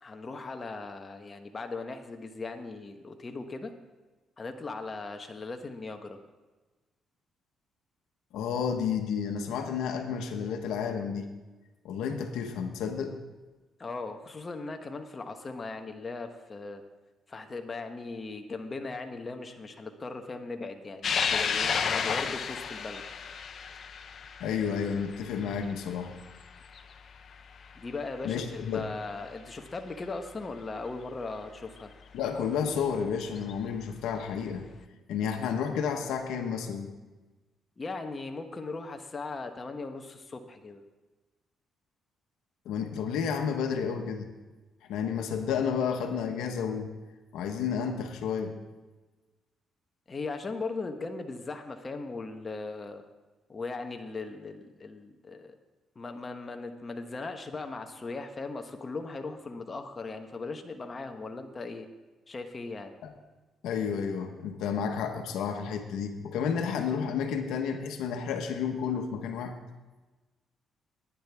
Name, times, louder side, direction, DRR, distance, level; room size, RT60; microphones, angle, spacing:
voice 1, 0.0-3.7 4.4-6.2 13.8-16.8 17.3-23.0 27.7-31.9 37.8-40.8 50.1-53.0 53.5-55.5 55.9-61.9 62.3-62.9, left 3 dB, 30° left, 5 dB, 1.1 m, -38 dB
voice 2, 8.3-11.3 11.8-13.2 24.4-26.1 28.2-28.8 32.1-34.6 35.1-36.9 42.6-44.3 44.9-46.9 47.3-48.6 63.0-63.1 63.6-69.6, left 7 dB, 85° left, 5 dB, 1.2 m, -31 dB
sound 1, 21.0-27.7 28.2-28.3 29.5-29.6 31.8-31.9 33.2-33.5, left 6 dB, 55° left, 0.7 m, -32 dB
17.5 x 9.9 x 3.5 m, 1.2 s
cardioid pair, 90°, 0 cm